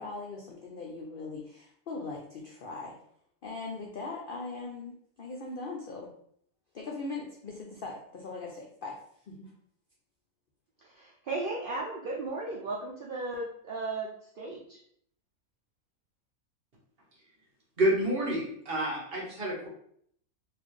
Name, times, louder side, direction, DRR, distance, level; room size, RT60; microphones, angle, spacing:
voice 1, 0.0-3.0 3.4-6.1 6.7-9.0 9.2-9.5, left 3 dB, 70° left, -1 dB, 0.5 m, -40 dB
voice 2, 10.8-14.8, right 2 dB, 75° right, -3 dB, 0.5 m, -36 dB
voice 3, 17.8-19.7, right 1 dB, 45° right, -4 dB, 1.2 m, -28 dB
4.1 x 2.5 x 3.1 m, 0.67 s
omnidirectional pair, 1.6 m